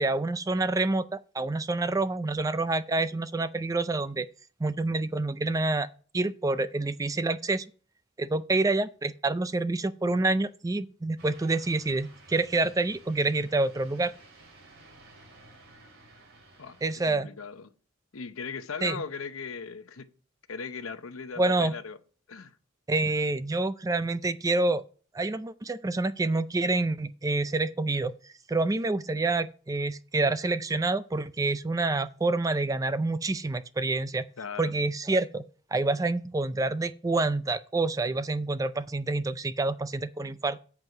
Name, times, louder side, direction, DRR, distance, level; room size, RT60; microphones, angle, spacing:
voice 1, 0.0-4.3 4.6-5.9 6.1-7.7 8.2-14.1 16.8-17.3 18.8-19.0 21.4-21.7 22.9-24.8 25.1-34.3 34.6-35.4 35.7-40.6, right 2 dB, 15° right, 0.3 m, -27 dB
sound 1, 11.2-17.1, right 2 dB, 85° right, 2.6 m, -54 dB
voice 2, 17.0-17.7 18.1-20.1 20.5-22.0 22.3-22.6 34.4-34.7, left 5 dB, 85° left, 0.8 m, -38 dB
8.0 x 7.4 x 4.7 m
head